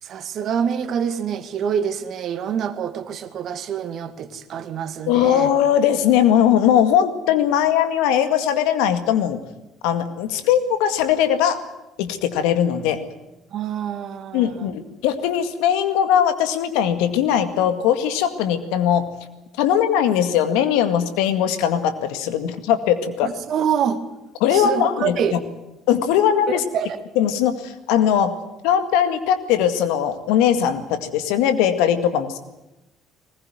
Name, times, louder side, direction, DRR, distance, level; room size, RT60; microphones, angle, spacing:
voice 1, 0.0-5.5 13.5-14.7 23.2-24.0 24.5-25.4 26.5-27.0, right 8 dB, 60° right, 9 dB, 2.1 m, -26 dB
voice 2, 5.1-9.4 9.8-11.6 12.0-13.0 14.3-19.1 19.6-23.3 24.4-25.4 25.9-26.6 27.2-28.4 28.6-32.4, left 9 dB, 75° left, 9 dB, 2.0 m, -20 dB
21.0 x 20.0 x 9.4 m, 0.97 s
hypercardioid pair, 55°, 0 cm